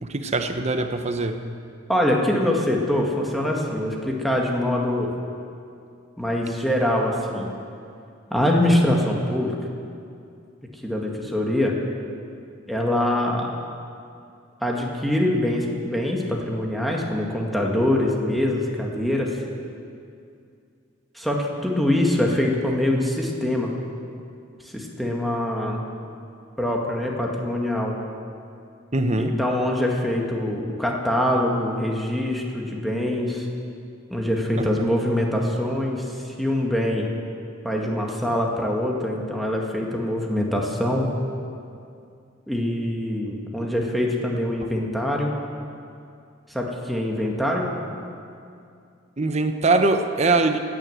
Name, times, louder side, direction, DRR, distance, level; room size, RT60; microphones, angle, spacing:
voice 1, 0.0-1.4 28.9-29.4 34.6-34.7 49.2-50.6, right 3 dB, 35° right, 7 dB, 0.9 m, -22 dB
voice 2, 1.9-5.1 6.2-7.5 8.3-9.5 10.8-11.8 12.7-13.5 14.6-19.3 21.1-23.7 24.6-25.8 26.6-28.0 29.2-33.5 34.1-37.1 37.6-41.1 42.5-45.3 46.5-47.7, left 1 dB, ahead, -1 dB, 1.8 m, -24 dB
17.0 x 9.7 x 7.8 m, 2.5 s
head